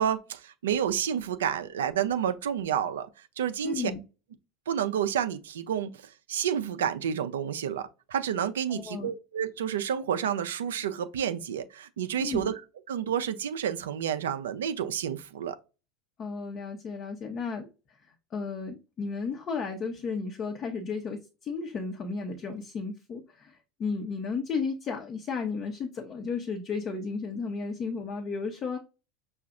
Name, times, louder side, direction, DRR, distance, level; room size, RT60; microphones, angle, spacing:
voice 1, 0.0-3.1 3.4-3.9 4.7-5.9 6.3-12.5 12.9-15.6, right 9 dB, 80° right, 0.5 m, -29 dB
voice 2, 3.6-4.0 8.7-9.1 12.2-12.5 16.2-17.7 18.3-28.8, left 5 dB, 40° left, 0.9 m, -34 dB
5.7 x 2.4 x 2.5 m
hypercardioid pair, 85°, 0 cm